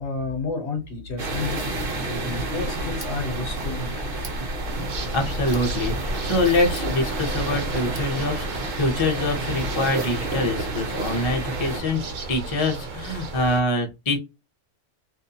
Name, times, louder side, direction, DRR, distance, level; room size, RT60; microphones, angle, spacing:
voice 1, 0.0-1.6 2.0-4.2, left 4 dB, 65° left, 1.0 m, -31 dB
sound 1, 1.2-11.8, right 2 dB, 50° right, 1.0 m, -30 dB
Tick, 2.2-8.2, left 1 dB, 30° right, 0.6 m, -36 dB
sound 2, 4.6-13.6, right 3 dB, 75° right, 1.0 m, -34 dB
voice 2, 5.1-12.0 12.3-14.2, left 2 dB, 30° left, 0.6 m, -25 dB
2.6 x 2.2 x 2.7 m
omnidirectional pair, 1.3 m